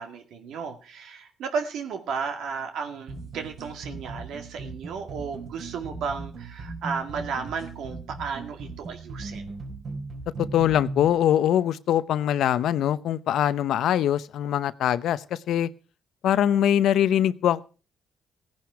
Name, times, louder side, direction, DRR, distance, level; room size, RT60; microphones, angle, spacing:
voice 1, 0.0-9.4, right 5 dB, 80° right, 6 dB, 2.0 m, -34 dB
sound 1, 3.1-11.1, right 3 dB, 55° right, 4.6 m, -38 dB
voice 2, 10.5-15.7 16.2-17.6, left 10 dB, 75° left, 16 dB, 0.7 m, -23 dB
16.5 x 10.5 x 4.7 m, 0.36 s
cardioid pair, 90°, 0 cm